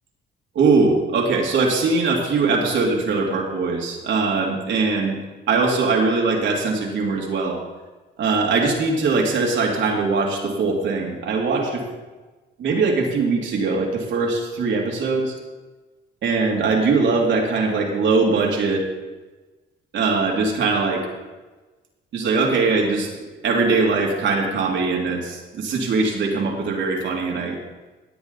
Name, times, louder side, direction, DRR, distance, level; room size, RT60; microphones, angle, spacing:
voice 1, 0.5-5.2 5.5-7.6 8.2-11.8 12.6-15.3 16.2-18.8 19.9-21.1 22.1-23.1 23.4-27.6, right 4 dB, 70° right, 0 dB, 2.8 m, -21 dB
18.5 x 8.2 x 4.0 m, 1.2 s
cardioid pair, 90°, 20 cm